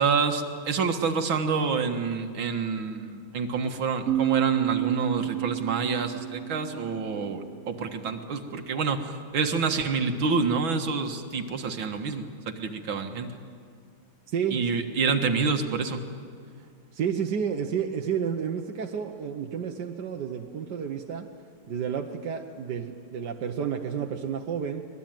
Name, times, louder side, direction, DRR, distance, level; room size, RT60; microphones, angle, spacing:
voice 1, 0.0-13.4 14.5-16.0, right 5 dB, 85° right, 5 dB, 2.3 m, -27 dB
sound 1, 4.1-7.7, right 13 dB, 45° right, 1.1 m, -30 dB
voice 2, 14.3-14.6 16.9-21.3 21.7-24.9, right 7 dB, 60° right, 2 dB, 1.6 m, -31 dB
25.0 x 20.0 x 9.1 m, 2.2 s
omnidirectional pair, 2.2 m